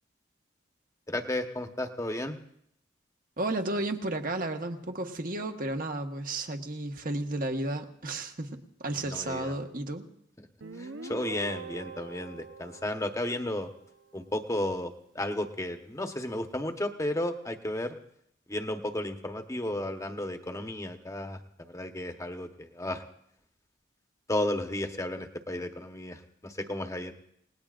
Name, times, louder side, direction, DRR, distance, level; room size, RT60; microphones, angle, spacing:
voice 1, 1.1-2.4 8.9-9.5 10.4-10.5 10.7-13.7 14.1-18.0 18.5-23.0 24.3-27.1, left 1 dB, 15° left, 6 dB, 1.1 m, -33 dB
voice 2, 3.4-8.5 8.8-10.1, right 2 dB, 45° right, 4 dB, 1.4 m, -33 dB
Guitar, 10.6-14.1, right 4 dB, 85° right, 0.9 m, -44 dB
29.5 x 19.0 x 2.5 m, 0.72 s
head